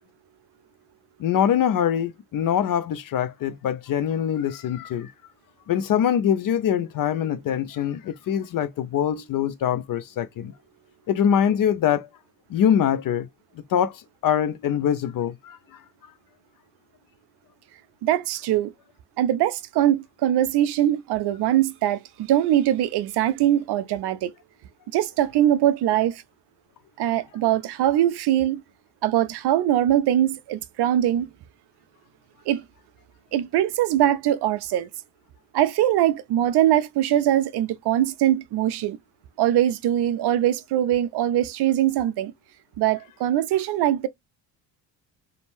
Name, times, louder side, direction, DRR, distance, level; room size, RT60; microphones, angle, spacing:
voice 1, 1.2-5.1 5.7-10.5 11.1-12.1 12.5-13.3 13.7-15.8, left 9 dB, 45° left, 0.5 m, -23 dB
voice 2, 18.0-18.7 19.2-22.0 22.3-24.3 24.9-26.2 27.0-28.6 29.0-31.3 32.5-32.6 33.3-34.9 35.5-39.0 39.4-42.3 42.8-44.1, right 12 dB, 55° right, 0.5 m, -22 dB
2.6 x 2.1 x 3.1 m
supercardioid pair, 70°, 50 cm